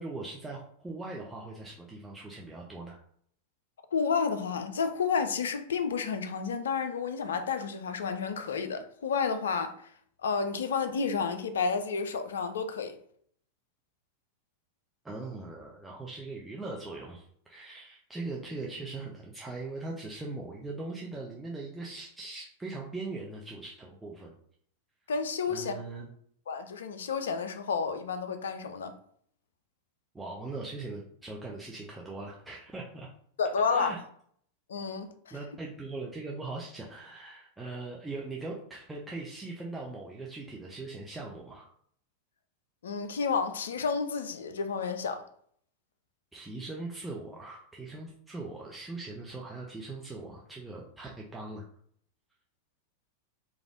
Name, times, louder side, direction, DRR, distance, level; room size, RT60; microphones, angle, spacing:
voice 1, 0.0-3.0 15.0-24.3 25.5-26.1 30.1-33.1 33.7-34.0 35.3-41.7 46.3-51.6, right 3 dB, 10° right, 0.4 m, -40 dB
voice 2, 3.9-9.8 10.2-13.0 25.1-25.7 26.5-28.9 33.4-34.0 34.7-35.3 42.8-45.2, left 5 dB, 65° left, 0.3 m, -30 dB
3.2 x 2.4 x 2.4 m
figure-of-eight pair, 90°, 0 cm